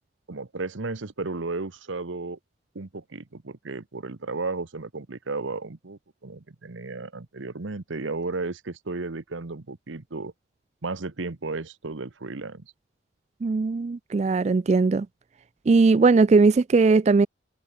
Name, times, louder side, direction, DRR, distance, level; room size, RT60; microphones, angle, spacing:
voice 1, 0.3-2.4 2.7-10.3 10.8-12.7, right 3 dB, 85° right, 1.1 m, -34 dB
voice 2, 13.4-15.1 15.7-17.3, right 4 dB, 35° right, 0.3 m, -19 dB
head